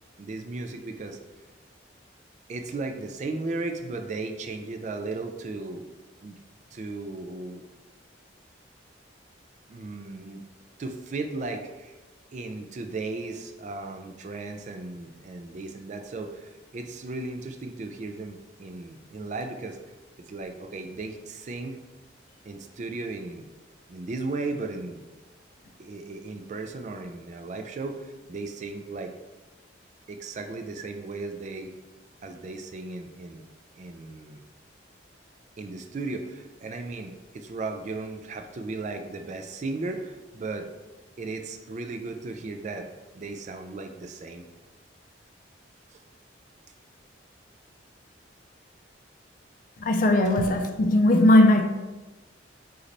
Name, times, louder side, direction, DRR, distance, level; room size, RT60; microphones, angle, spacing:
voice 1, 0.2-1.2 2.5-5.9 6.2-6.4 6.7-7.6 9.7-10.4 10.8-12.0 12.3-19.8 20.3-21.8 22.5-23.5 23.9-25.1 25.8-29.2 30.1-31.7 32.2-33.4 33.8-34.5 35.6-40.7 41.2-44.4 45.9-46.0, right 3 dB, 40° right, 6 dB, 0.3 m, -36 dB
voice 2, 49.8-51.6, left 1 dB, 45° left, 5 dB, 0.4 m, -18 dB
3.9 x 3.2 x 3.9 m, 1.1 s
head